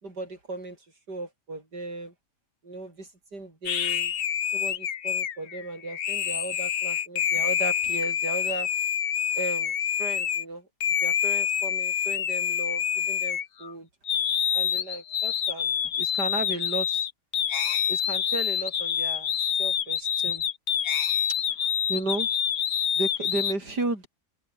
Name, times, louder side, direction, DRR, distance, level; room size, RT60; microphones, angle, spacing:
voice 1, 0.0-2.1 2.6-4.1 4.5-8.7 9.4-13.9 14.5-17.1 17.9-20.4 21.5-22.3 22.9-24.1, right 2 dB, 85° right, 6.6 m, -35 dB
sound 1, 3.6-10.4 10.8-13.7 14.0-23.5, left 9 dB, 50° left, 0.7 m, -27 dB
open air
omnidirectional pair, 1.7 m